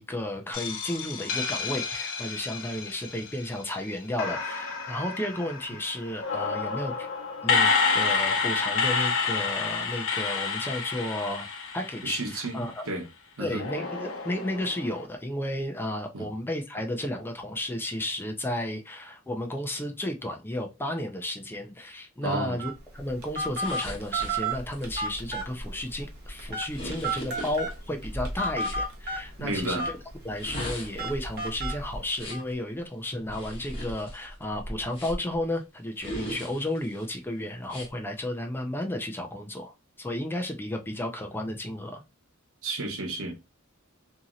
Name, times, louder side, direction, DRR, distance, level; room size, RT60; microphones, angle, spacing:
voice 1, 0.0-7.1 7.4-11.5 11.7-12.8 13.4-29.9 30.2-42.0, left 1 dB, 10° left, 0.4 m, -33 dB
sound 1, 0.5-3.7 4.2-12.6 13.6-15.1, left 5 dB, 65° left, 0.7 m, -29 dB
voice 2, 12.0-13.0 13.4-13.7 16.1-16.3 22.2-22.6 29.4-29.9 42.6-43.3, right 2 dB, 75° right, 1.0 m, -32 dB
Telephone, 22.6-32.4, right 2 dB, 50° right, 1.1 m, -34 dB
sound 2, 23.6-28.8 30.2-32.5 33.3-35.4 36.0-37.0 37.6-37.9, equal, 25° left, 1.2 m, -38 dB
2.9 x 2.7 x 2.5 m
head